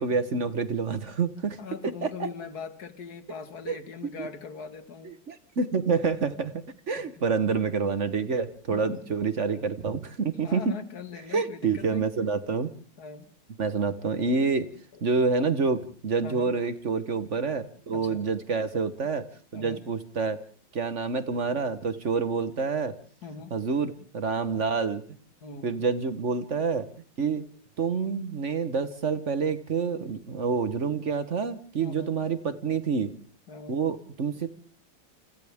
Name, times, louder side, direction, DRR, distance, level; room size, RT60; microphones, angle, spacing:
voice 1, 0.0-1.6 2.0-2.3 3.7-3.8 4.2-4.3 5.0-10.7 11.3-12.7 13.6-14.7 15.0-19.3 19.5-20.4 20.7-22.9 23.5-25.0 25.6-26.9 27.2-27.4 27.8-33.1 33.7-34.5, right 5 dB, 40° right, 12 dB, 1.3 m, -27 dB
voice 2, 1.6-5.1 7.0-7.3 8.7-9.0 10.4-12.1 13.0-13.3 14.9-15.0 16.2-16.5 17.9-18.3 19.5-19.8 23.2-23.5 25.4-25.7 31.8-32.1 33.5-33.8, left 5 dB, 50° left, 10 dB, 2.2 m, -41 dB
28.5 x 26.0 x 3.6 m, 0.44 s
omnidirectional pair, 2.1 m